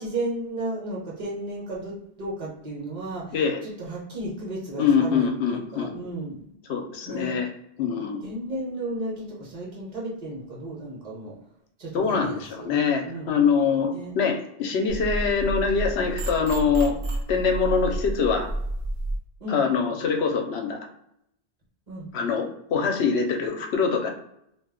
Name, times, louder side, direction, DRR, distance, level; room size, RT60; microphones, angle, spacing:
voice 1, 0.0-3.4 3.6-6.5 7.0-7.4 8.2-11.3 11.8-12.7 13.1-13.3 13.9-14.1 19.4-19.6 21.9-22.1, right 1 dB, 40° right, -4 dB, 1.0 m, -34 dB
voice 2, 4.8-5.9 6.7-7.5 7.8-8.2 11.9-13.9 14.1-17.0 17.3-18.5 19.5-20.8 22.1-24.1, left 5 dB, 75° left, 4 dB, 0.8 m, -24 dB
sound 1, 14.9-19.2, right 1 dB, 90° right, 1.0 m, -30 dB
2.4 x 2.2 x 3.5 m, 0.75 s
omnidirectional pair, 1.1 m